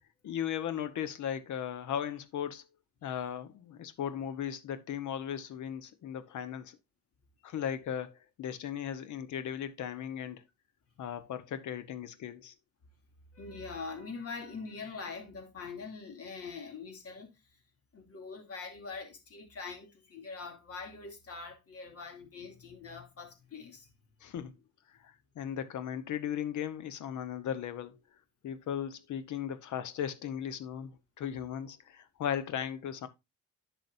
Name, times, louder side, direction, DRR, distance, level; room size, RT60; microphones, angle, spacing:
voice 1, 0.2-2.6 3.0-6.8 7.4-10.4 11.0-12.5 24.2-24.5 25.0-28.0 28.4-33.1, left 9 dB, 75° left, 1.1 m, -37 dB
voice 2, 13.3-17.3 17.9-23.9, left 4 dB, 50° left, 2.7 m, -43 dB
10.5 x 6.2 x 2.6 m
cardioid pair, 90°, 30 cm